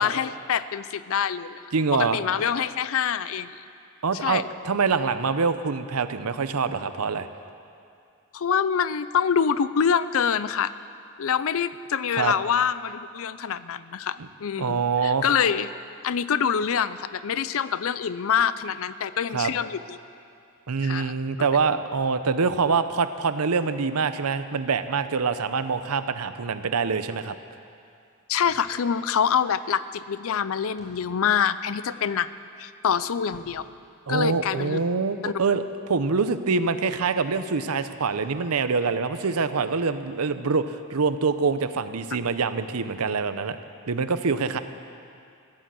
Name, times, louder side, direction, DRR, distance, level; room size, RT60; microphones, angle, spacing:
voice 1, 0.0-1.6 1.9-3.6 4.2-4.5 8.3-10.7 11.2-15.7 16.0-20.0 20.8-21.1 21.4-21.5 28.3-32.3 32.6-33.7 34.1-34.8 35.2-35.3, left 7 dB, 65° left, 15 dB, 0.5 m, -25 dB
voice 2, 1.7-2.2 4.0-7.3 12.1-12.3 14.2-14.3 14.6-15.2 19.3-19.5 20.7-27.3 34.1-43.6 43.9-44.6, right 5 dB, 80° right, 11 dB, 0.7 m, -25 dB
sound 1, 28.4-29.3 29.6-29.7 30.8-31.4 31.9-32.0 33.3-33.9 34.1-34.8, equal, 50° left, 4.4 m, -53 dB
15.5 x 11.0 x 7.6 m, 2.5 s
head